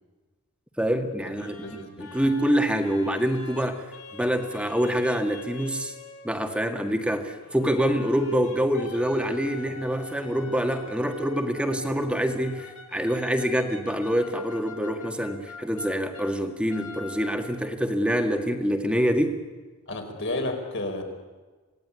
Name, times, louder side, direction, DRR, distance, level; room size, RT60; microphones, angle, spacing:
voice 1, 0.8-1.6 2.0-3.8 4.1-5.9 6.2-19.4, equal, 5° right, 5 dB, 1.9 m, -26 dB
sound 1, 1.3-6.5 7.4-16.4 16.7-17.7, left 2 dB, 75° left, 4.1 m, -45 dB
voice 2, 1.4-2.1 19.9-21.0, left 2 dB, 55° left, 3 dB, 4.7 m, -32 dB
27.5 x 18.5 x 9.8 m, 1.4 s
head